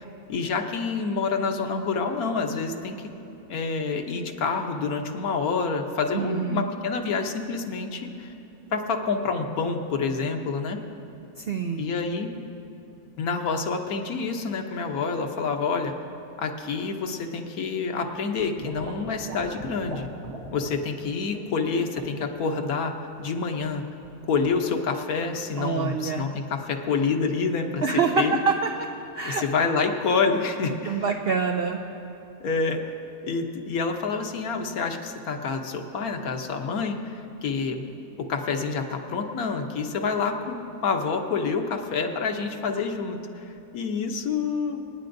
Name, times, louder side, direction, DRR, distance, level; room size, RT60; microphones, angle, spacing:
voice 1, 0.3-3.1 3.5-8.3 8.7-10.8 11.8-12.3 13.2-16.0 16.4-20.1 20.5-23.8 24.2-28.4 29.2-31.0 32.4-32.9 33.2-37.9 38.2-40.6 40.8-44.8, left 4 dB, 70° left, 4 dB, 1.3 m, -27 dB
voice 2, 6.1-6.7 11.4-11.8 25.6-26.3 27.8-28.5 29.1-29.4 30.8-31.8, right 5 dB, 80° right, 4 dB, 0.5 m, -25 dB
sound 1, 18.4-20.8 21.3-21.6 22.0-22.2 23.6-24.2 24.4-24.6, right 2 dB, 50° right, 1.1 m, -40 dB
27.5 x 9.5 x 2.6 m, 3.0 s
omnidirectional pair, 1.7 m